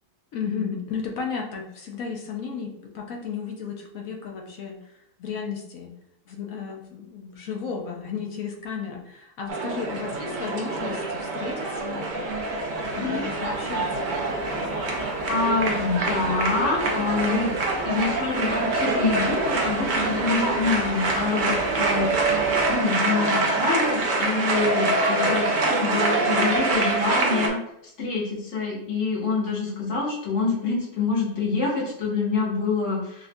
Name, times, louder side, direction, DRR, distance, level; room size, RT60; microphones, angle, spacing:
voice 1, 0.3-4.8 5.2-5.9 6.3-12.1 12.9-14.2, left 6 dB, 65° left, 1 dB, 1.0 m, -33 dB
sound 1, 9.5-27.5, right 2 dB, 90° right, 0.4 m, -25 dB
sound 2, 12.5-22.8, left 1 dB, 10° left, 0.3 m, -38 dB
voice 2, 15.3-17.5 17.8-22.3 22.7-27.6 28.0-33.3, left 4 dB, 50° left, -4 dB, 1.5 m, -26 dB
6.1 x 2.4 x 2.2 m, 0.76 s
omnidirectional pair, 1.7 m